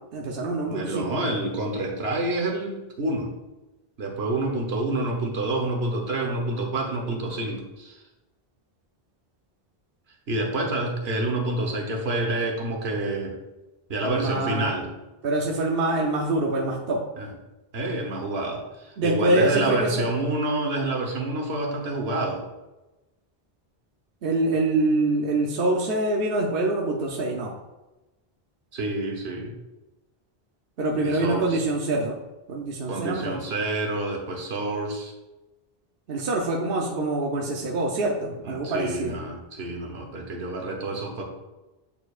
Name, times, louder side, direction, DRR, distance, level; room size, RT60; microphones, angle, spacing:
voice 1, 0.1-1.2 14.0-14.8 15.2-17.0 19.0-20.0 24.2-27.5 30.8-32.2 32.5-33.4 36.1-39.2, right 2 dB, 65° right, -1 dB, 0.9 m, -25 dB
voice 2, 0.7-3.3 4.0-8.0 10.3-13.4 13.9-14.9 17.2-17.3 17.7-22.4 28.7-29.5 31.0-31.6 32.9-35.1 38.4-41.2, right 2 dB, 85° right, 1 dB, 1.3 m, -28 dB
8.7 x 4.5 x 2.4 m, 1.1 s
omnidirectional pair, 1.0 m